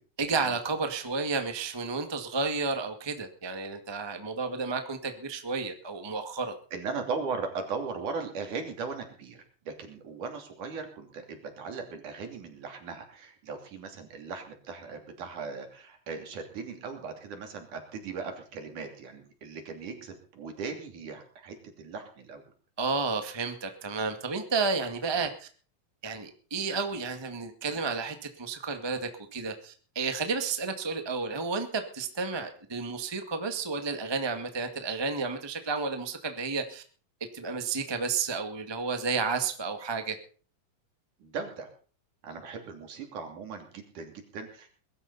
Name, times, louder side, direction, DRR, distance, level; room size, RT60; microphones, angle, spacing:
voice 1, 0.2-6.5 22.8-25.5 26.0-36.8 37.3-40.2, right 4 dB, 15° right, 6 dB, 1.0 m, -31 dB
voice 2, 6.7-22.4 41.2-41.7 42.2-44.7, right 4 dB, 65° right, 5 dB, 4.4 m, -38 dB
22.0 x 12.5 x 4.2 m, 0.41 s
omnidirectional pair, 3.9 m